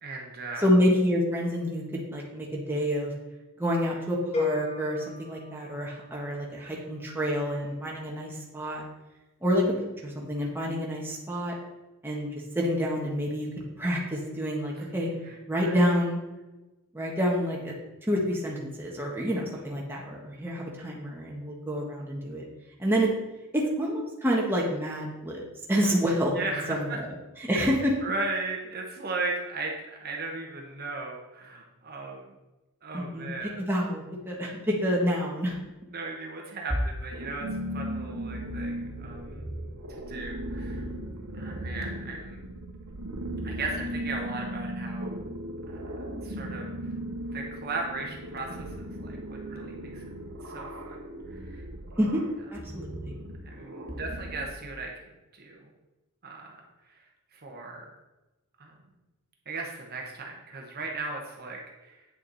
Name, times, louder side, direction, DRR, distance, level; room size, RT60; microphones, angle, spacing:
voice 1, 0.0-0.7 14.8-14.9 15.2-15.4 15.6-15.8 26.3-27.0 27.5-27.7 28.0-32.3 32.8-33.6 35.9-37.5 37.7-39.4 40.1-40.8 41.3-42.4 43.4-45.2 45.7-45.8 46.2-46.7 47.3-50.0 50.4-51.0 51.3-51.6 53.4-54.9 55.3-55.7 56.2-56.9 57.3-57.9 58.6-58.7 59.4-62.1, right 3 dB, 45° right, 0 dB, 1.2 m, -36 dB
voice 2, 0.6-3.1 3.6-8.8 9.4-9.8 10.0-11.5 12.0-12.3 12.6-13.5 13.8-15.1 15.5-16.2 16.9-17.8 18.1-22.4 22.8-23.1 23.5-25.4 25.7-27.1 27.4-27.9 32.9-35.6 52.0-52.2 52.5-53.2, equal, 10° right, -3 dB, 1.6 m, -28 dB
sound 1, 4.3-6.4, left 4 dB, 30° left, 1.1 m, -34 dB
sound 2, 37.1-54.5, right 1 dB, 90° right, 1.4 m, -37 dB
9.3 x 6.5 x 4.2 m, 1.1 s
head